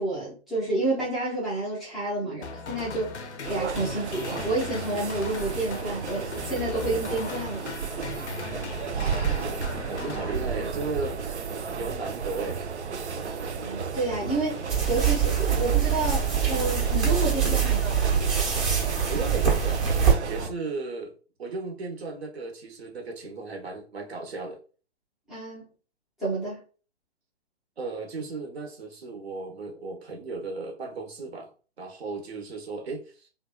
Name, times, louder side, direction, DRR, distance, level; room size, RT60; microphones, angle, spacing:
voice 1, 0.0-7.7 13.6-18.1 20.4-20.5 25.3-25.7 26.2-26.6, right 2 dB, ahead, 0.4 m, -30 dB
sound 1, 2.4-11.0, left 5 dB, 85° left, 0.6 m, -38 dB
sound 2, 3.4-20.5, right 6 dB, 90° right, 0.5 m, -32 dB
voice 2, 8.9-11.3 11.8-12.6 19.1-21.1 21.4-24.6 27.8-31.5 31.8-33.3, right 3 dB, 70° right, 1.0 m, -35 dB
sound 3, 14.7-20.1, right 7 dB, 30° right, 0.9 m, -24 dB
2.7 x 2.3 x 2.2 m
figure-of-eight pair, 130°, 33 cm